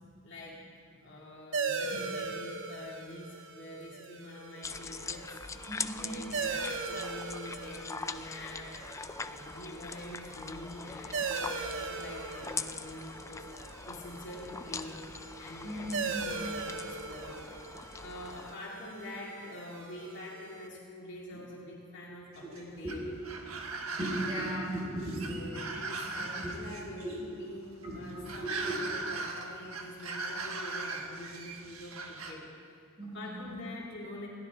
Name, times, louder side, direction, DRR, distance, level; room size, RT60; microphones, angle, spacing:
voice 1, 0.2-0.6 1.0-5.4 6.0-8.7 9.2-13.5 13.8-15.0 15.4-17.4 17.7-23.0 25.3-32.7 33.1-34.3, left 1 dB, 60° left, -5 dB, 2.3 m, -46 dB
sound 1, 1.5-20.7, right 4 dB, 65° right, 1.0 m, -40 dB
sound 2, 4.6-18.5, left 4 dB, 15° left, 0.4 m, -42 dB
voice 2, 5.7-6.1 15.6-16.2 21.3-21.4 22.8-23.1 23.9-25.6 26.4-26.5 27.0-27.2 27.8-28.8 33.0-33.6, right 1 dB, 25° right, -5 dB, 4.7 m, -37 dB
sound 3, 22.3-32.3, right 3 dB, 85° right, 1.4 m, -39 dB
21.5 x 16.0 x 3.5 m, 2.4 s
head